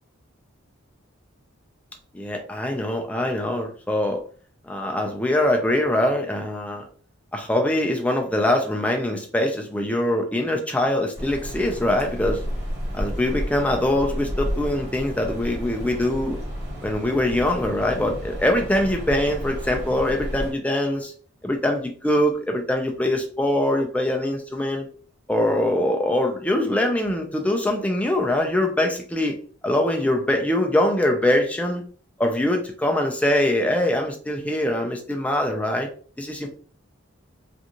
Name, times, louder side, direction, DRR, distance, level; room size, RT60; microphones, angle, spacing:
voice 1, 2.1-4.2 4.6-6.8 7.3-12.4 12.9-16.4 16.8-21.1 21.4-24.9 25.3-29.4 29.6-31.8 32.2-35.9 36.2-36.5, left 1 dB, 5° left, 3 dB, 0.4 m, -23 dB
sound 1, 11.1-20.5, equal, 50° right, 1.2 m, -32 dB
2.5 x 2.4 x 2.8 m, 0.43 s
head